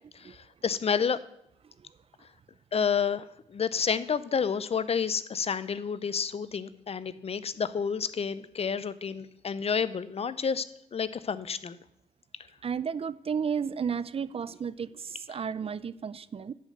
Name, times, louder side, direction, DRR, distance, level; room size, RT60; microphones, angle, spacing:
voice 1, 0.1-1.2 2.7-3.2 3.5-11.8 15.3-15.4, left 6 dB, 45° left, 16 dB, 0.6 m, -30 dB
voice 2, 12.6-16.5, right 6 dB, 45° right, 17 dB, 0.5 m, -33 dB
11.0 x 5.1 x 7.8 m, 0.79 s
supercardioid pair, 55°, 14 cm